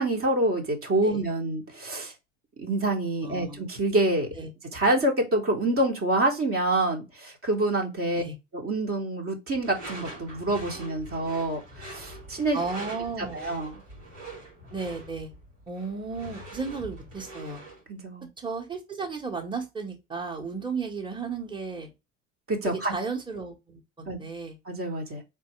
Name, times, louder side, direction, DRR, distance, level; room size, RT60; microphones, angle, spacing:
voice 1, 0.0-2.1 2.6-4.4 4.7-8.2 8.5-12.6 13.2-13.8 17.9-18.3 22.5-22.9 24.0-24.2 24.6-25.2, right 2 dB, 35° right, 1.6 m, -27 dB
voice 2, 3.2-3.6 4.4-4.5 8.1-8.4 12.5-13.4 14.7-15.3 15.7-17.6 18.4-21.9 22.6-24.6, right 4 dB, 15° right, 1.5 m, -34 dB
Door / Screech, 9.6-17.8, right 1 dB, 85° right, 2.3 m, -43 dB
4.1 x 3.5 x 3.2 m
hypercardioid pair, 65°, 37 cm